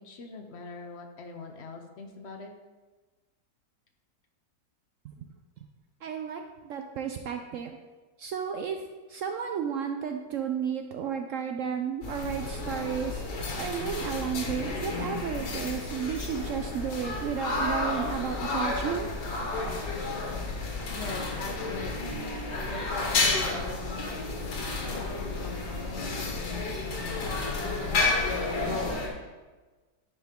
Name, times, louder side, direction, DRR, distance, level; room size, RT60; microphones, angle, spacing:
voice 1, 0.0-2.5 11.3-11.5 20.9-22.3 22.7-27.6, left 3 dB, 55° left, 4 dB, 0.8 m, -43 dB
voice 2, 6.0-7.8 8.2-19.1, right 7 dB, 70° right, 5 dB, 0.7 m, -33 dB
sound 1, 12.0-29.1, left 3 dB, 85° left, 1.9 m, -31 dB
10.5 x 5.2 x 3.6 m, 1.3 s
omnidirectional pair, 1.8 m